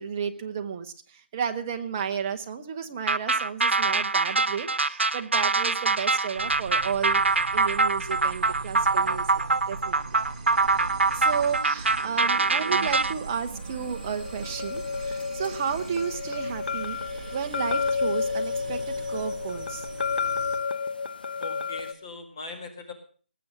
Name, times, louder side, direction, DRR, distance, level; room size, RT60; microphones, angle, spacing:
voice 1, 0.0-9.3 9.7-10.0 11.1-17.0 17.3-19.9, right 7 dB, 15° right, 5 dB, 0.7 m, -32 dB
sound 1, 3.1-13.1, right 3 dB, 80° right, 1.0 m, -24 dB
sound 2, 6.3-20.7, right 4 dB, 35° right, 1.3 m, -40 dB
sound 3, 13.6-21.9, left 5 dB, 50° left, 1.1 m, -31 dB
voice 2, 21.4-22.9, left 3 dB, 25° left, 4 dB, 1.9 m, -40 dB
19.5 x 7.6 x 7.2 m, 0.41 s
figure-of-eight pair, 175°, 6 cm